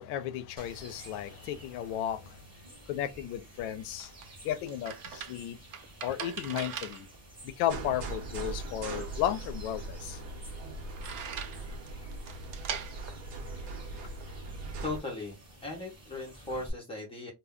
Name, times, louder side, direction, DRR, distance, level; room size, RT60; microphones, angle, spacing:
voice 1, 0.0-2.4 2.9-4.1 4.4-5.6 6.0-7.1 7.4-10.2, left 11 dB, 75° left, 0.6 m, -34 dB
sound 1, 0.6-16.7, right 1 dB, 10° right, 0.8 m, -52 dB
sound 2, 3.5-14.3, right 8 dB, 50° right, 0.5 m, -44 dB
sound 3, 7.7-15.0, right 2 dB, 70° right, 0.9 m, -40 dB
voice 2, 14.8-17.3, left 2 dB, 15° left, 0.5 m, -38 dB
2.2 x 2.1 x 3.5 m
cardioid pair, 170°, 45 cm